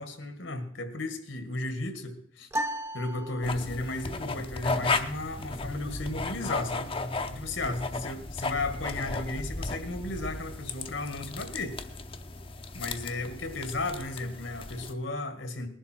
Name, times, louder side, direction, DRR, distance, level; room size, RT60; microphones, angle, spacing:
voice 1, 0.0-2.5 2.9-6.9 7.3-11.8 12.7-15.7, left 2 dB, 75° left, 8 dB, 1.9 m, -34 dB
sound 1, 2.5-4.0, right 1 dB, 15° right, 0.8 m, -35 dB
sound 2, 3.4-14.9, left 3 dB, 25° left, 0.7 m, -35 dB
19.5 x 11.0 x 4.5 m, 0.64 s
head